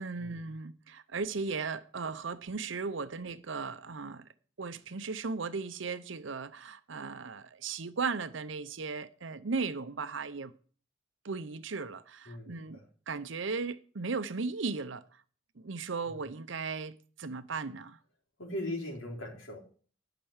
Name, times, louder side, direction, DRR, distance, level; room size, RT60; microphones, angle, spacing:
voice 1, 0.0-4.3 4.6-10.5 11.2-12.8 13.1-15.0 15.6-18.0, right 4 dB, 70° right, 0.7 m, -36 dB
voice 2, 12.3-12.9 16.1-16.2 18.4-19.6, left 1 dB, 80° left, 4.0 m, -39 dB
12.0 x 5.9 x 7.3 m
head